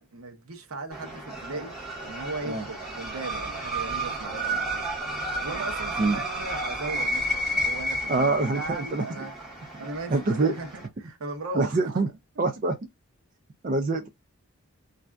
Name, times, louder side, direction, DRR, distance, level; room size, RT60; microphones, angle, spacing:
voice 1, 0.0-1.7 2.0-4.9 5.4-9.3 9.8-12.0 12.4-12.5, right 3 dB, 75° right, 0.8 m, -37 dB
sound 1, 0.9-10.9, right 1 dB, ahead, 1.4 m, -32 dB
voice 2, 8.1-9.1 10.1-10.5 11.5-12.1 12.4-12.8 13.6-14.1, right 3 dB, 35° right, 0.3 m, -25 dB
3.3 x 2.5 x 2.3 m
head